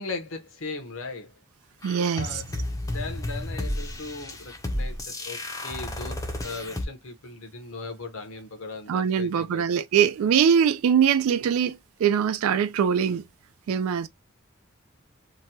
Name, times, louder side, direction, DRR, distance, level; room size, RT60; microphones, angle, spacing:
voice 1, 0.0-1.4 2.0-2.6 2.8-9.7, left 3 dB, 75° left, 0.9 m, -38 dB
sound 1, 1.8-6.9, left 1 dB, 15° left, 0.5 m, -32 dB
voice 2, 1.8-2.4 8.9-13.2 13.7-14.1, right 8 dB, 85° right, 0.3 m, -22 dB
3.0 x 2.2 x 2.7 m
head